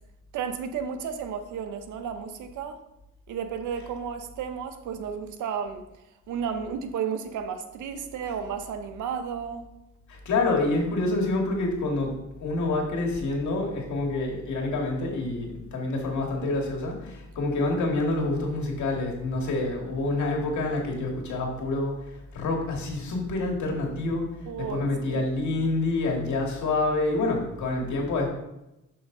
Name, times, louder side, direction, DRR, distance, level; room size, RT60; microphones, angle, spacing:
voice 1, 0.3-2.8 3.3-5.8 6.3-9.7 24.5-25.2, right 7 dB, 80° right, 9 dB, 0.8 m, -33 dB
voice 2, 10.1-24.3 24.6-28.3, left 2 dB, 70° left, 0 dB, 1.9 m, -27 dB
6.4 x 5.8 x 3.7 m, 0.92 s
cardioid pair, 90°, 30 cm